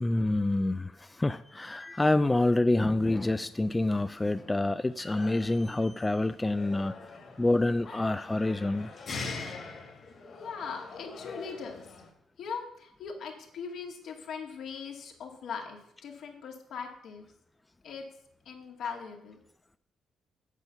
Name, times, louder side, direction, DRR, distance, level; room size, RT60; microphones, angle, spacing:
voice 1, 0.0-8.9 9.4-9.5, left 2 dB, 15° left, 12 dB, 0.4 m, -27 dB
sound 1, 2.7-12.1, left 4 dB, 50° left, 2.3 m, -44 dB
voice 2, 10.3-11.9 12.4-17.3 17.8-18.1 18.5-19.4, left 6 dB, 70° left, 2 dB, 2.2 m, -40 dB
8.2 x 5.6 x 7.9 m, 0.75 s
cardioid pair, 90°, 0 cm